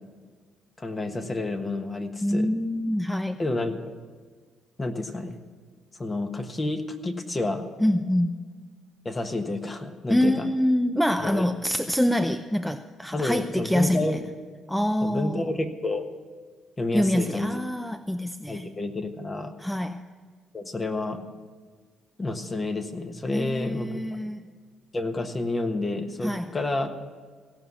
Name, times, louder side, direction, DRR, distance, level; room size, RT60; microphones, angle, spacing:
voice 1, 0.8-2.5 3.4-3.9 4.8-5.4 6.0-7.7 9.0-10.5 11.2-11.5 13.1-14.2 15.0-16.1 16.8-17.6 18.5-19.5 20.5-21.2 22.2-24.0 24.9-27.0, left 2 dB, 30° left, 6 dB, 1.4 m, -29 dB
voice 2, 2.2-3.4 7.8-8.4 10.1-14.2 14.7-15.5 16.9-18.7 19.6-20.0 23.3-24.5 26.2-26.5, equal, 5° left, 10 dB, 0.5 m, -25 dB
16.5 x 5.6 x 9.5 m, 1.5 s
hypercardioid pair, 55°, 0 cm